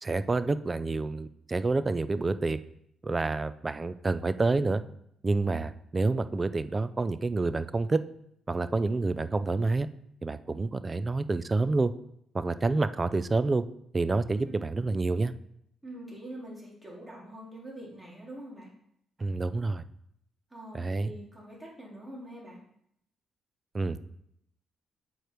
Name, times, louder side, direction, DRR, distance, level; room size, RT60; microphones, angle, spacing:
voice 1, 0.0-2.6 3.0-4.8 5.2-8.0 8.5-9.9 10.2-11.9 12.3-13.6 13.9-15.3 19.2-19.8 20.7-21.1 23.7-24.0, right 3 dB, 25° right, 13 dB, 0.5 m, -28 dB
voice 2, 15.8-18.7 20.5-22.6, right 1 dB, 10° right, -4 dB, 3.2 m, -44 dB
8.1 x 4.9 x 4.6 m, 0.73 s
cardioid pair, 90°, 0 cm